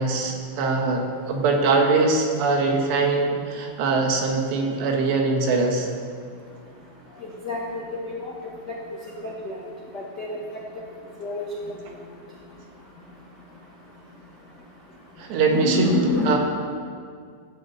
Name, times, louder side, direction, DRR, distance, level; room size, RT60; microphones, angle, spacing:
voice 1, 0.0-5.9 15.2-15.9 16.3-16.4, right 3 dB, 75° right, 2 dB, 3.6 m, -22 dB
voice 2, 7.4-8.3 9.2-9.5 9.9-10.4 11.2-11.5 15.4-16.3, left 2 dB, 75° left, -4 dB, 0.9 m, -26 dB
14.5 x 8.3 x 8.5 m, 2.1 s
omnidirectional pair, 5.2 m